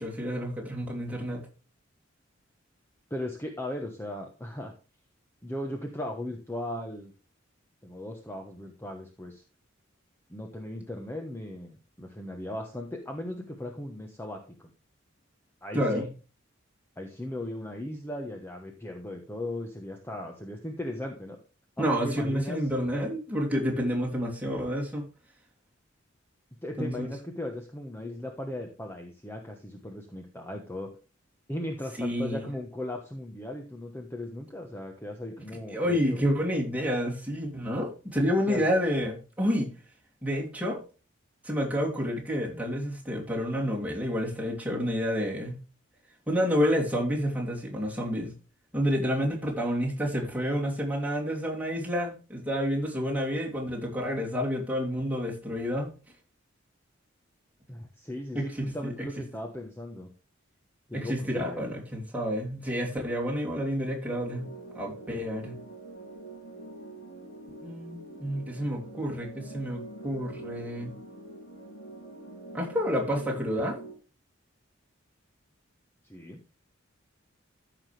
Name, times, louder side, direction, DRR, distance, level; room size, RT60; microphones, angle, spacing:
voice 1, 0.0-1.4 15.7-16.1 21.8-25.0 26.8-27.1 32.0-32.4 35.7-39.7 40.2-40.8 41.4-45.6 46.3-48.3 48.7-55.9 58.3-58.9 60.9-65.5 67.6-70.9 72.5-73.8, equal, 5° right, -3 dB, 3.0 m, -29 dB
voice 2, 3.1-4.7 5.4-7.1 7.8-9.4 10.3-14.7 15.6-16.1 17.0-21.4 21.8-22.6 26.6-30.9 31.5-36.2 38.5-38.6 57.7-60.1 60.9-61.8 76.0-76.4, left 1 dB, 10° left, 2 dB, 1.2 m, -37 dB
sound 1, 64.1-73.9, right 2 dB, 80° left, 3.6 m, -45 dB
14.5 x 6.0 x 3.4 m, 0.34 s
head